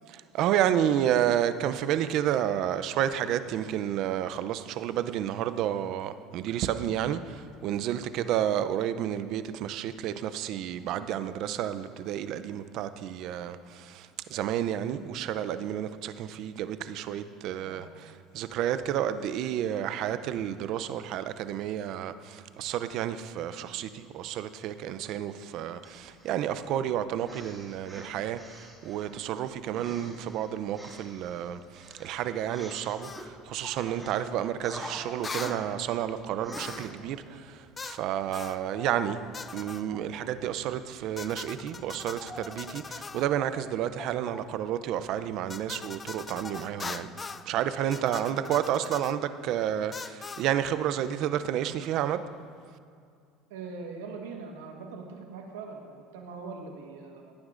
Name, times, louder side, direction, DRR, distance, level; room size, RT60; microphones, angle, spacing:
voice 1, 0.1-39.2 39.5-52.2, right 10 dB, 60° right, 12 dB, 0.5 m, -31 dB
sound 1, 25.8-26.5 27.2-29.2 29.7-33.3 33.6-34.2 34.6-35.9 36.4-36.9, right 1 dB, 10° right, 2.1 m, -46 dB
sound 2, 33.0-33.3 35.2-35.6 36.5-37.0 37.8-38.0 38.3-38.6 39.3-39.8 41.2-43.3 45.5-47.5 47.9-49.2 49.9-50.5, left 4 dB, 25° left, 0.4 m, -40 dB
sound 3, 33.0-47.4, left 1 dB, 5° left, 0.8 m, -50 dB
voice 2, 53.5-57.3, right 4 dB, 90° right, 2 dB, 1.4 m, -42 dB
17.5 x 9.5 x 2.6 m, 2.3 s
supercardioid pair, 100°, 0 cm